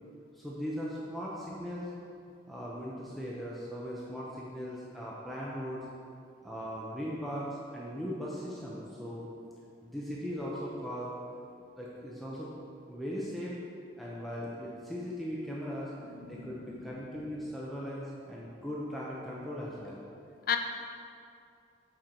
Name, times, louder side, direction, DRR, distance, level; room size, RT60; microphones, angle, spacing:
voice 1, 0.3-1.9 2.5-5.8 6.4-9.3 9.8-11.1 11.8-12.5 12.9-13.5 14.0-15.9 16.3-20.0, equal, ahead, -6 dB, 0.6 m, -38 dB
voice 2, 16.2-16.7 20.5-20.6, left 8 dB, 50° left, 4 dB, 0.4 m, -33 dB
7.6 x 4.5 x 4.4 m, 2.4 s
head